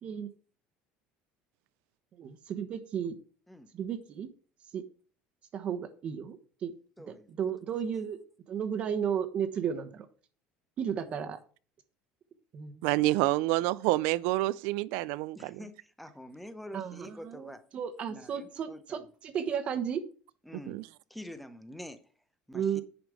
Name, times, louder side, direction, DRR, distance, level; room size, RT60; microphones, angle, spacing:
voice 1, 2.2-3.1 3.7-4.3 4.7-4.8 5.5-6.7 7.1-8.2 8.5-10.1 10.8-11.4 12.5-12.8 16.7-20.0 22.5-22.8, right 8 dB, 35° right, 1.1 m, -34 dB
voice 2, 7.0-7.3 7.9-8.1 10.9-11.2 15.4-17.6 18.1-19.1 20.4-22.1 22.5-22.8, left 1 dB, ahead, 0.7 m, -47 dB
voice 3, 12.8-15.6 20.7-20.8, right 18 dB, 75° right, 0.4 m, -28 dB
10.0 x 5.2 x 4.9 m
cardioid pair, 160°, 3 cm